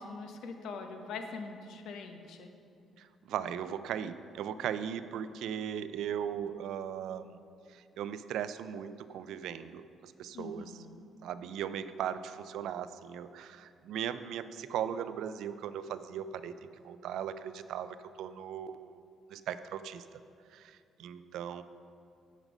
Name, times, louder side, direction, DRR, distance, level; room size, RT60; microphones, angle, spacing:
voice 1, 0.0-2.5 10.3-10.9, left 4 dB, 80° left, 5 dB, 0.8 m, -43 dB
voice 2, 3.0-7.4 7.7-10.7 11.2-19.0 19.3-20.1 20.5-21.6, right 9 dB, 85° right, 12 dB, 0.3 m, -38 dB
9.1 x 5.2 x 5.2 m, 2.4 s
cardioid pair, 90°, 0 cm